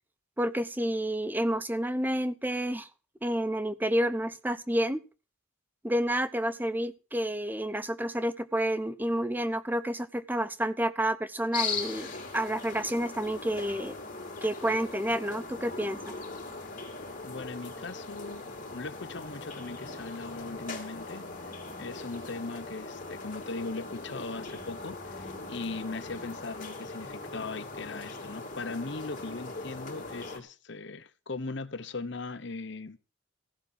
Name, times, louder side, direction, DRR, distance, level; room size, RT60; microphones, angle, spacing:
voice 1, 0.4-2.9 3.2-5.0 5.8-12.1 12.3-13.9 14.4-16.1, right 1 dB, 10° right, 0.7 m, -29 dB
sound 1, 11.5-30.4, left 3 dB, 40° left, 3.1 m, -40 dB
voice 2, 17.2-21.2 21.8-33.0, left 3 dB, 55° left, 0.9 m, -39 dB
15.5 x 7.0 x 7.3 m
head